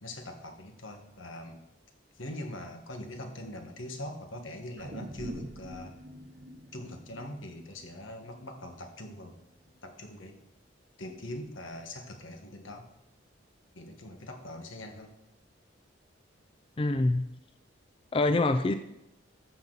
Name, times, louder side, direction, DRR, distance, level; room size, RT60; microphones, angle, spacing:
voice 1, 0.0-1.6 2.1-6.0 6.7-9.4 9.8-10.4 11.0-12.9 13.7-15.2, left 1 dB, 85° left, 5 dB, 1.6 m, -42 dB
sound 1, 4.8-9.3 9.7-9.8, right 1 dB, 60° right, 1.0 m, -45 dB
voice 2, 16.8-17.2 18.1-18.7, left 2 dB, 25° left, 9 dB, 0.4 m, -25 dB
13.5 x 7.1 x 4.0 m, 0.89 s
head